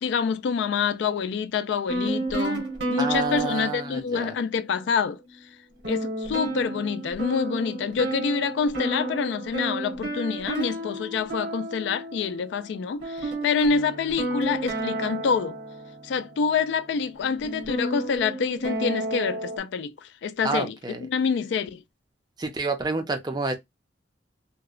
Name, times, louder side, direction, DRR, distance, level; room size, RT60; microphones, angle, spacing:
voice 1, 0.0-5.2 5.9-15.6 16.0-21.8, left 5 dB, 70° left, 0.3 m, -27 dB
sound 1, 1.9-4.8 5.3-5.4 5.8-16.5 17.2-19.6, right 1 dB, 65° right, 1.0 m, -32 dB
voice 2, 3.0-4.3 20.4-21.1 22.4-23.6, right 3 dB, 20° right, 0.4 m, -28 dB
2.8 x 2.0 x 2.4 m
head